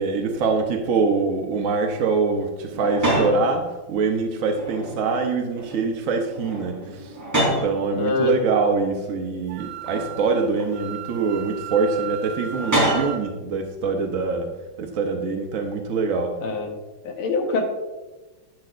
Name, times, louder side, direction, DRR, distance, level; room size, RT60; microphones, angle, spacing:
voice 1, 0.0-14.5 14.8-16.4, right 4 dB, 65° right, 3 dB, 0.8 m, -24 dB
sound 1, 2.7-3.4 4.4-5.2 5.5-5.9 6.2-7.7 8.6-8.7 9.8-10.7 12.5-13.2, right 1 dB, 10° right, 3.1 m, -26 dB
voice 2, 8.0-8.3 16.4-16.7 17.0-17.6, left 3 dB, 85° left, 3 dB, 2.1 m, -23 dB
Wind instrument woodwind instrument, 9.5-13.2, right 9 dB, 85° right, 1.6 m, -36 dB
10.5 x 8.5 x 2.5 m, 1.1 s
omnidirectional pair, 2.3 m